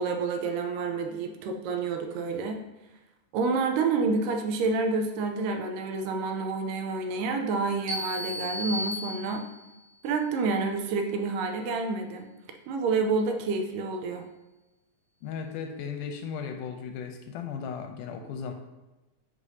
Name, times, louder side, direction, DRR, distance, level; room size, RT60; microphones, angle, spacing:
voice 1, 0.0-2.6 3.3-9.5 10.0-12.3 12.7-14.2, right 4 dB, 80° right, 5 dB, 2.3 m, -28 dB
sound 1, 7.9-9.7, left 1 dB, 50° right, 2.2 m, -34 dB
voice 2, 15.2-18.5, left 6 dB, 80° left, 5 dB, 2.0 m, -36 dB
9.7 x 5.1 x 2.7 m, 1.0 s
omnidirectional pair, 3.9 m